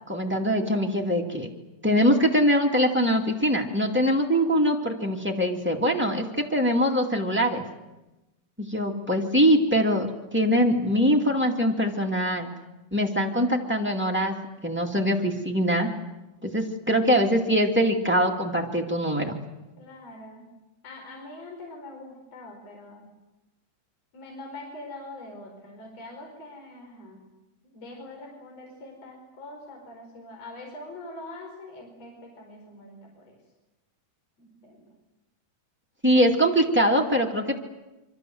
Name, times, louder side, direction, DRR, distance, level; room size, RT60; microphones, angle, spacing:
voice 1, 0.1-1.5 1.8-7.6 8.6-12.5 12.9-14.3 14.6-15.9 16.4-19.4 36.0-37.6, equal, 5° right, 1 dB, 0.9 m, -23 dB
voice 2, 19.8-20.5 20.8-23.1 24.1-27.2 27.6-33.4 34.4-34.9 36.0-36.4, left 2 dB, 40° left, 1 dB, 5.9 m, -43 dB
28.5 x 24.5 x 7.8 m, 1.0 s
omnidirectional pair, 4.6 m